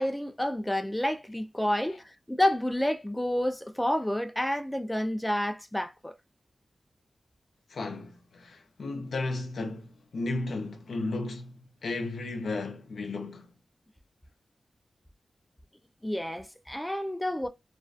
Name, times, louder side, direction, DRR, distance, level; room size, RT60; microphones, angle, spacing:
voice 1, 0.0-6.1 16.0-17.5, left 1 dB, 10° left, 0.3 m, -29 dB
voice 2, 7.7-13.5, left 2 dB, 85° left, 0.4 m, -34 dB
2.4 x 2.3 x 2.2 m
cardioid pair, 65°, 0 cm